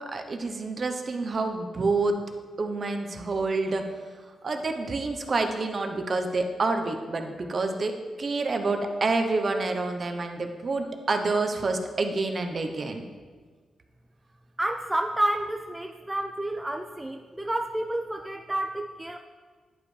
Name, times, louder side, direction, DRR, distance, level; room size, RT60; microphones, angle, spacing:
voice 1, 0.0-2.2 2.6-3.8 4.4-7.9 8.2-13.0, right 3 dB, 45° right, 5 dB, 0.7 m, -28 dB
voice 2, 14.6-19.2, right 1 dB, 10° right, 5 dB, 0.3 m, -30 dB
10.5 x 5.0 x 3.2 m, 1.5 s
cardioid pair, 90°, 0 cm